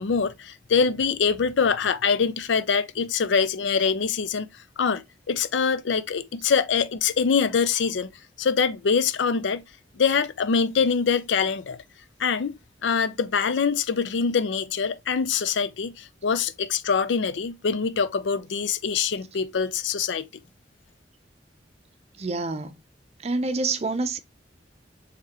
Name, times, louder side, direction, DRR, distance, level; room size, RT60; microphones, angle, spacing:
voice 1, 0.0-4.5 4.8-8.1 8.4-9.6 10.0-11.8 12.2-12.5 12.8-20.2, left 6 dB, 90° left, 0.5 m, -24 dB
voice 2, 22.2-22.8 23.2-24.2, right 3 dB, 35° right, 0.5 m, -27 dB
4.7 x 3.4 x 2.9 m
head